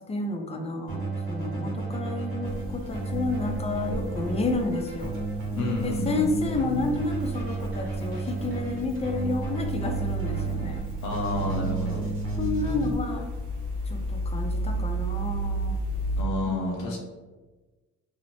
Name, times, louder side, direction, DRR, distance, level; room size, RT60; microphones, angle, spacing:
voice 1, 0.0-5.1 5.8-10.9 11.3-11.7 12.4-13.3 13.8-15.8 16.5-17.0, left 2 dB, 20° left, 4 dB, 0.4 m, -31 dB
Keyboard (musical), 0.9-12.9, right 3 dB, 45° right, 0.9 m, -33 dB
sound 1, 2.5-16.2, right 2 dB, 85° right, 0.6 m, -33 dB
voice 2, 5.5-6.3 11.0-12.1 16.2-17.0, left 2 dB, 80° left, -2 dB, 0.7 m, -30 dB
2.6 x 2.0 x 3.0 m, 1.2 s
cardioid pair, 90°, 30 cm